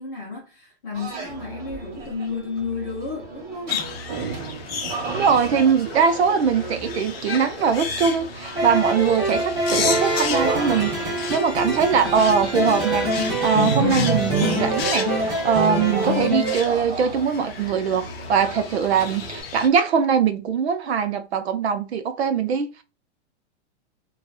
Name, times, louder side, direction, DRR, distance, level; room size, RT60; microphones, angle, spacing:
voice 1, 0.0-3.9, left 5 dB, 20° left, 0.6 m, -32 dB
sound 1, 0.9-19.4, right 4 dB, 40° right, 1.2 m, -35 dB
sound 2, 3.7-19.7, left 6 dB, 60° left, 0.6 m, -34 dB
voice 2, 5.0-22.8, right 6 dB, 65° right, 0.7 m, -22 dB
sound 3, 8.6-16.6, right 1 dB, 10° right, 0.9 m, -24 dB
2.8 x 2.3 x 2.2 m
hypercardioid pair, 180°, 34 cm